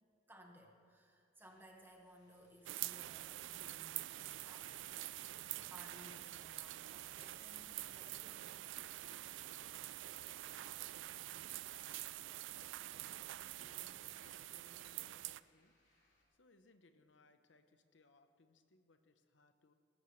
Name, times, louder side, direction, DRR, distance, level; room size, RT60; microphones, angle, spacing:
voice 1, 0.3-4.8 5.5-8.6, equal, 10° right, 1 dB, 1.5 m, -61 dB
sound 1, 1.4-16.2, left 1 dB, 70° left, 3.4 m, -79 dB
sound 2, 2.7-15.4, right 15 dB, 85° right, 0.3 m, -47 dB
sound 3, 3.6-14.3, right 7 dB, 35° right, 1.2 m, -70 dB
voice 2, 13.1-15.8 16.3-19.7, left 3 dB, 85° left, 8 dB, 0.9 m, -69 dB
18.5 x 14.5 x 3.2 m, 2.5 s
head